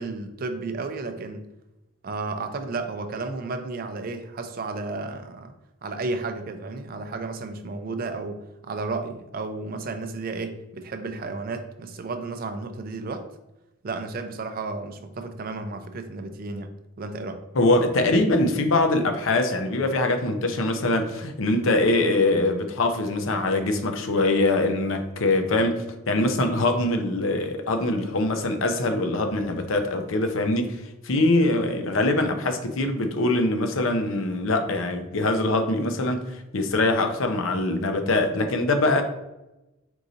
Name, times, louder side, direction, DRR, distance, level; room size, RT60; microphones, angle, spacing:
voice 1, 0.0-1.5 2.0-5.5 5.8-13.3 13.8-16.7 17.0-17.4, right 3 dB, 45° right, 7 dB, 0.4 m, -33 dB
voice 2, 17.5-39.0, left 2 dB, 70° left, 6 dB, 0.6 m, -23 dB
4.6 x 2.6 x 3.8 m, 0.96 s
head